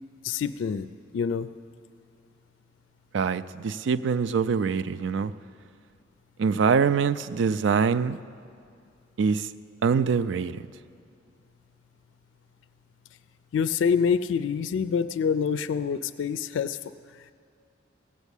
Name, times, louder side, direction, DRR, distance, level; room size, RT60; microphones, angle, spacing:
voice 1, 0.2-0.9 1.1-1.5 13.5-16.8, left 6 dB, 85° left, 0.3 m, -26 dB
voice 2, 3.1-5.3 6.4-8.2 9.2-9.5 9.8-10.6, right 5 dB, 80° right, 0.4 m, -24 dB
15.5 x 7.1 x 8.3 m
head